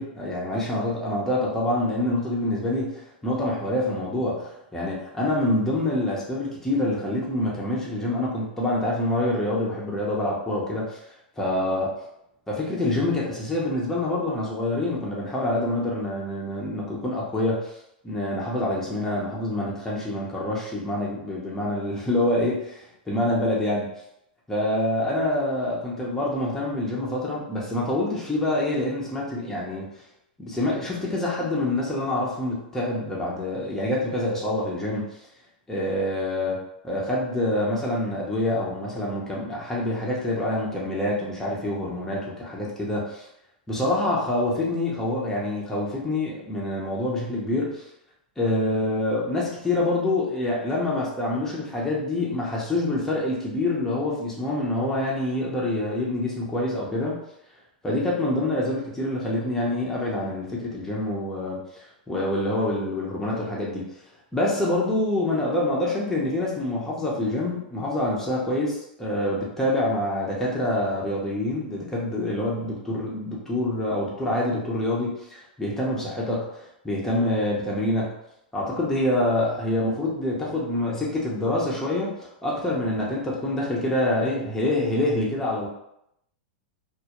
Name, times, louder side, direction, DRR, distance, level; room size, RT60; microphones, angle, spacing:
voice 1, 0.0-11.0 11.4-11.9 12.5-17.7 18.0-23.9 24.5-29.9 30.4-35.0 35.7-43.3 43.7-47.8 48.4-57.2 57.8-61.6 62.1-63.8 64.3-78.1 78.5-82.1 82.4-85.7, left 1 dB, 5° left, -5 dB, 0.6 m, -26 dB
2.2 x 2.0 x 2.9 m, 0.80 s
hypercardioid pair, 115°, 5 cm